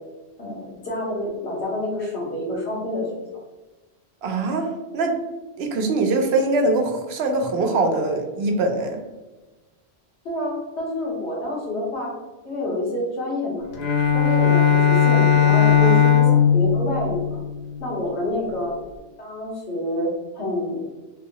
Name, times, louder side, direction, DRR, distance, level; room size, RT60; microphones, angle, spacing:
voice 1, 0.4-3.1 10.2-12.1 12.4-13.6 14.1-17.4 17.8-18.8 19.2-20.8, left 1 dB, 80° left, -5 dB, 1.6 m, -28 dB
voice 2, 4.2-5.2 5.6-9.0 15.8-16.0, right 2 dB, 75° right, 4 dB, 0.8 m, -22 dB
Bowed string instrument, 13.7-18.1, left 8 dB, 55° left, 0.5 m, -18 dB
3.4 x 2.7 x 2.9 m, 1.2 s
omnidirectional pair, 1.1 m